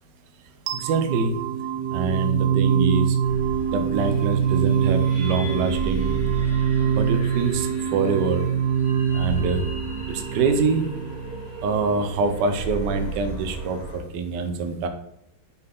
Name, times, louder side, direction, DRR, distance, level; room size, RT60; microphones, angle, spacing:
sound 1, 0.7-11.6, right 8 dB, 85° right, 0.8 m, -24 dB
voice 1, 0.8-1.4 1.9-3.1 3.7-6.1 7.0-8.4 9.1-9.6 10.1-10.8 11.6-13.8 14.1-14.9, right 4 dB, 70° right, 6 dB, 1.2 m, -25 dB
sound 2, 3.2-14.0, right 3 dB, 65° left, 2.1 m, -34 dB
6.5 x 3.9 x 3.7 m, 0.80 s
omnidirectional pair, 2.1 m